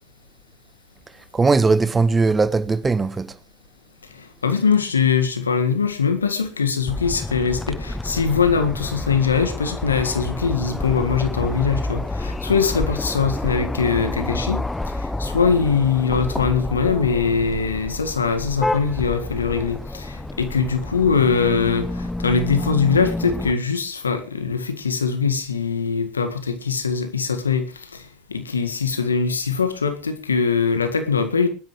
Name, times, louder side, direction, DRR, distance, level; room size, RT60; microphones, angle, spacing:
voice 1, 1.3-3.4, right 4 dB, 20° right, 1.2 m, -19 dB
voice 2, 4.1-31.5, left 5 dB, 90° left, 1.8 m, -22 dB
sound 1, 6.9-23.5, left 2 dB, 10° left, 0.9 m, -29 dB
23.0 x 12.0 x 3.2 m
hypercardioid pair, 70°, 0 cm